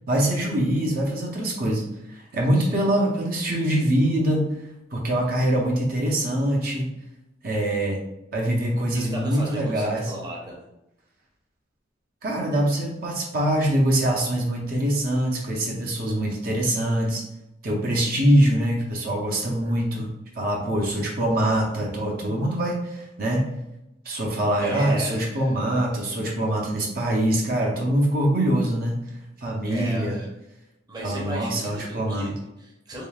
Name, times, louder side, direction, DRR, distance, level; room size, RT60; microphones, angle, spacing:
voice 1, 0.1-4.6 4.9-6.9 7.4-8.0 8.3-10.1 12.2-17.2 17.6-20.1 20.4-23.5 24.0-29.0 29.4-30.2 31.0-32.3, right 1 dB, 50° right, -1 dB, 0.6 m, -24 dB
voice 2, 2.5-2.9 8.9-10.6 19.6-19.8 24.6-25.5 29.6-30.3 30.9-33.1, equal, 20° right, -2 dB, 0.7 m, -36 dB
3.6 x 3.4 x 2.3 m, 0.89 s
head